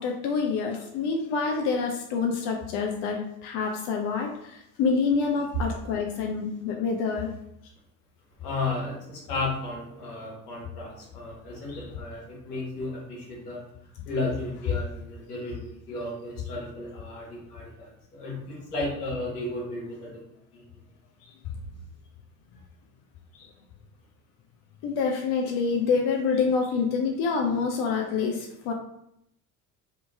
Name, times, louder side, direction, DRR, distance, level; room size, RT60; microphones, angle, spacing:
voice 1, 0.0-7.3 11.7-11.8 16.5-16.6 23.4-23.5 24.8-28.7, left 5 dB, 55° left, 2 dB, 0.6 m, -27 dB
voice 2, 8.4-12.2 12.5-13.6 14.1-15.6 15.9-17.6 18.1-20.1, left 2 dB, 85° left, -3 dB, 1.2 m, -33 dB
2.9 x 2.8 x 3.4 m, 0.78 s
hypercardioid pair, 60°, 45 cm